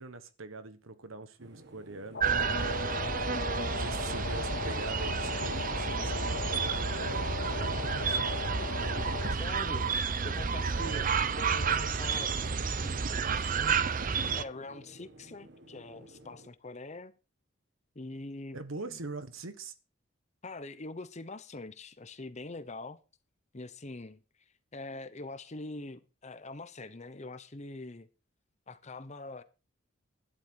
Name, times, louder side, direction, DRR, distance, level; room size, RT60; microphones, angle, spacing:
voice 1, 0.0-2.8 3.7-8.4 10.7-11.1 18.5-19.7, right 3 dB, 85° right, 1.3 m, -43 dB
sound 1, 1.4-16.5, right 1 dB, 55° right, 1.7 m, -53 dB
sound 2, 2.1-9.3, left 4 dB, 60° left, 2.3 m, -37 dB
sound 3, 2.2-14.4, right 5 dB, 40° right, 0.6 m, -31 dB
voice 2, 9.3-9.9 10.2-17.1 17.9-18.6 18.9-19.0 20.4-23.0 23.5-24.2 24.7-28.1 28.7-29.4, left 2 dB, 35° left, 0.9 m, -44 dB
12.0 x 11.5 x 4.6 m
head